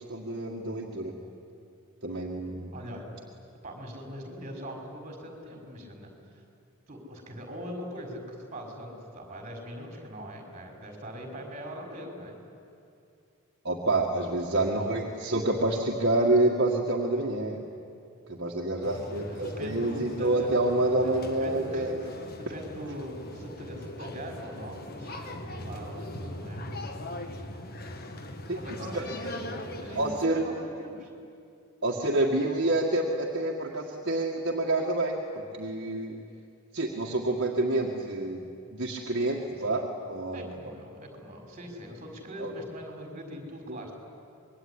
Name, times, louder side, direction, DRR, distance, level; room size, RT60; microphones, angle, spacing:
voice 1, 0.1-1.1 2.0-2.7 13.6-17.6 18.3-22.0 28.5-28.6 28.9-29.0 30.0-30.4 31.8-35.2 35.5-36.2 36.7-38.4 38.7-40.6 42.4-42.5 43.7-43.8, right 2 dB, 50° right, -2 dB, 2.0 m, -28 dB
voice 2, 2.7-3.0 3.6-6.1 6.9-12.4 14.7-15.0 19.0-20.5 20.8-22.0 22.4-26.6 28.5-31.1 39.6-39.8 40.3-43.9, equal, 30° right, 2 dB, 5.2 m, -41 dB
sound 1, 18.8-30.2, left 1 dB, 45° left, 1.6 m, -40 dB
26.0 x 22.5 x 10.0 m, 2.5 s
head